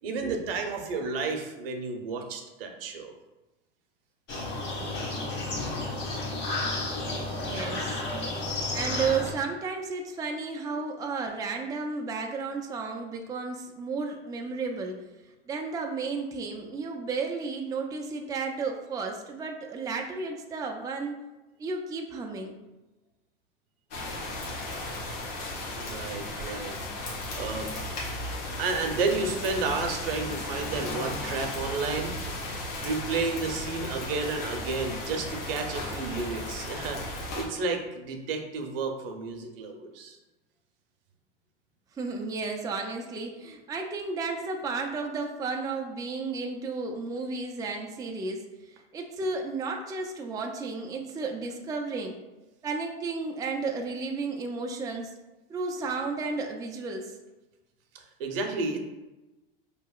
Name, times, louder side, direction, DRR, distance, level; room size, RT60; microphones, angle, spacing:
voice 1, 0.0-3.1 25.8-26.8 27.3-27.7 28.6-32.1 32.4-40.2 57.9-58.8, right 4 dB, 75° right, 4 dB, 0.7 m, -32 dB
sound 1, 4.3-9.3, left 2 dB, 40° left, 1.1 m, -32 dB
voice 2, 7.4-8.0 8.7-15.0 15.5-21.2 21.6-22.6 41.9-52.2 52.6-55.1 55.5-57.1, right 4 dB, 15° right, 2 dB, 0.4 m, -33 dB
sound 2, 23.9-37.5, left 1 dB, 75° left, 1.2 m, -35 dB
4.7 x 2.8 x 2.3 m, 1.1 s
hypercardioid pair, 100°, 29 cm